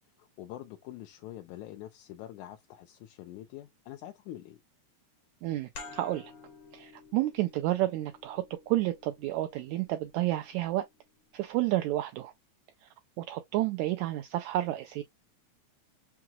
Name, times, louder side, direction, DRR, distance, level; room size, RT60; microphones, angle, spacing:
voice 1, 0.2-4.6, left 13 dB, 80° left, 1.9 m, -45 dB
voice 2, 5.4-6.3 6.7-10.9 11.3-12.3 13.2-15.0, right 16 dB, 80° right, 1.8 m, -30 dB
sound 1, 5.7-11.0, left 4 dB, 55° left, 1.3 m, -51 dB
5.8 x 2.8 x 2.2 m
omnidirectional pair, 3.6 m